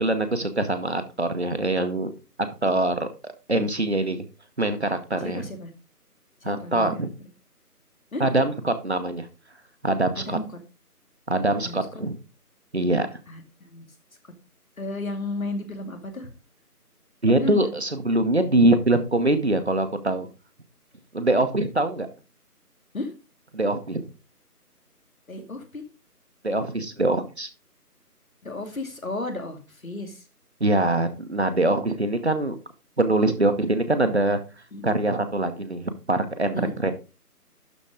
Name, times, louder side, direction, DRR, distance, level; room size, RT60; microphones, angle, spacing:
voice 1, 0.0-2.1 2.6-4.2 4.6-5.4 6.4-7.1 8.2-9.3 9.8-10.4 11.3-12.2 12.7-13.1 17.2-20.3 21.1-22.1 23.5-24.0 26.4-27.5 30.6-32.5 33.0-34.4 34.8-36.9, right 2 dB, 45° right, 8 dB, 1.0 m, -23 dB
voice 2, 5.2-5.7 6.4-7.1 8.1-8.2 10.1-10.4 11.6-11.9 13.3-13.9 14.8-16.3 17.3-17.7 22.9-23.1 25.3-25.8 28.4-30.2 34.7-35.0 36.5-36.9, left 2 dB, 60° left, 5 dB, 2.4 m, -33 dB
12.0 x 4.1 x 4.9 m, 0.32 s
figure-of-eight pair, 170°, 47 cm